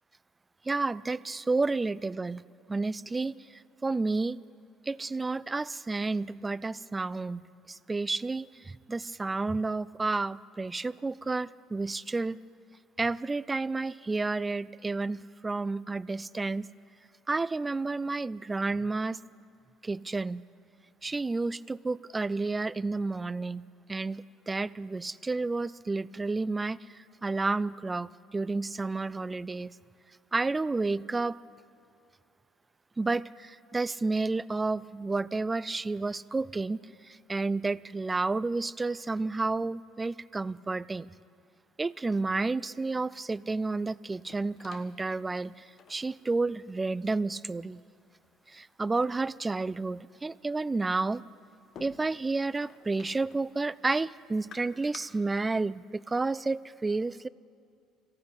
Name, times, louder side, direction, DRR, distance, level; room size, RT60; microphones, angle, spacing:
voice 1, 0.7-2.4 2.7-3.3 3.8-4.4 4.9-7.4 7.7-12.4 13.0-16.7 17.3-19.2 19.8-20.4 21.0-23.6 23.9-26.8 27.2-29.7 30.3-31.4 33.0-36.8 37.1-41.1 41.8-47.8 48.5-51.2 51.8-57.3, right 3 dB, 20° right, 20 dB, 0.3 m, -31 dB
sound 1, 43.6-55.0, left 6 dB, 55° left, 1.2 m, -56 dB
14.5 x 10.0 x 9.8 m, 2.5 s
supercardioid pair, 75°, 0 cm